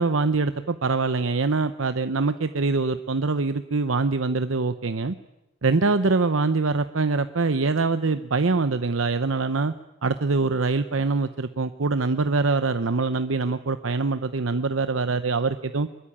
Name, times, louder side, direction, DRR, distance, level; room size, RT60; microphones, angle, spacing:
voice 1, 0.0-5.1 5.6-9.7 10.0-15.9, right 3 dB, 80° right, 11 dB, 0.9 m, -24 dB
25.5 x 22.0 x 8.9 m, 0.93 s
head